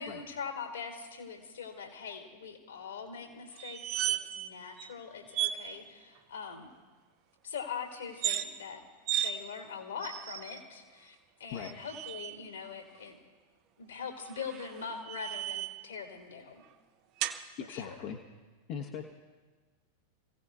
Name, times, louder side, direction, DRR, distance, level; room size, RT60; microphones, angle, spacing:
voice 1, 0.0-6.7 7.4-8.8 9.2-13.1 13.8-16.6 17.7-18.0, left 6 dB, 70° left, 1 dB, 2.5 m, -42 dB
sound 1, 3.6-4.5 4.8-4.9 5.3-5.6 8.1-8.5 9.1-9.3 10.0-10.6 11.5-12.4 14.2-15.9 17.2-17.4, right 12 dB, 40° right, 0.7 m, -34 dB
voice 2, 17.6-18.2 18.7-19.0, left 7 dB, 45° left, 1 dB, 1.1 m, -39 dB
30.0 x 16.5 x 2.4 m, 1.4 s
figure-of-eight pair, 90°, 0 cm